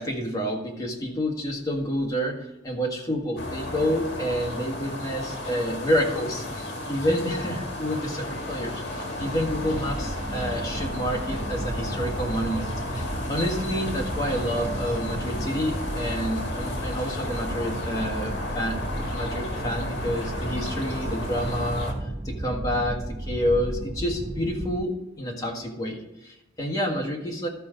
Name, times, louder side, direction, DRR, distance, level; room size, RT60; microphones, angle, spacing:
voice 1, 0.0-27.5, equal, 20° left, 0 dB, 1.7 m, -29 dB
sound 1, 3.4-21.9, left 1 dB, 60° left, 1.8 m, -33 dB
sound 2, 9.2-24.8, right 1 dB, 15° right, 0.3 m, -34 dB
13.0 x 5.3 x 5.1 m, 0.95 s
head